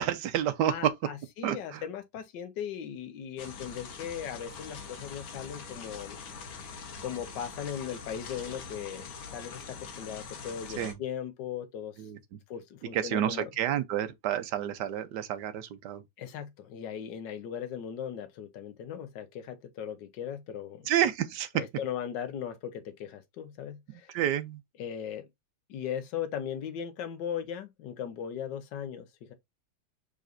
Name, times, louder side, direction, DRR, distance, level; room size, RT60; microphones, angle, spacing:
voice 1, 0.0-0.9 1.4-1.8 10.8-11.0 12.0-12.2 12.9-16.0 20.9-21.6 23.9-24.6, right 10 dB, 70° right, 1.2 m, -29 dB
voice 2, 0.7-6.2 7.0-11.9 12.5-13.5 16.2-20.9 21.5-24.1 24.8-25.3 25.7-29.0, left 8 dB, 70° left, 1.5 m, -38 dB
sound 1, 3.4-10.9, left 5 dB, 85° left, 1.9 m, -43 dB
5.0 x 4.1 x 2.5 m
omnidirectional pair, 2.1 m